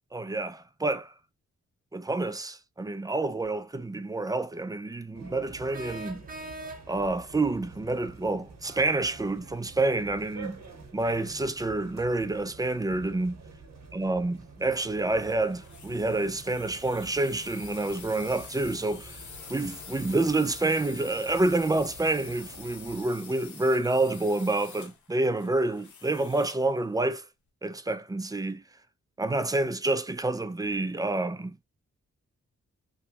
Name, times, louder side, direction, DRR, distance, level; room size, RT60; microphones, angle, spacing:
voice 1, 0.1-1.1 1.9-6.2 6.9-10.6 10.9-13.4 13.9-19.2 19.5-27.2 27.6-28.6 29.2-31.6, right 2 dB, 15° right, 0.3 m, -28 dB
sound 1, 5.1-23.1, right 4 dB, 65° right, 0.9 m, -48 dB
sound 2, 5.7-7.2, right 1 dB, 30° right, 0.8 m, -41 dB
sound 3, 15.2-26.7, left 6 dB, 80° left, 0.9 m, -47 dB
3.0 x 2.3 x 2.8 m
cardioid pair, 80°, 29 cm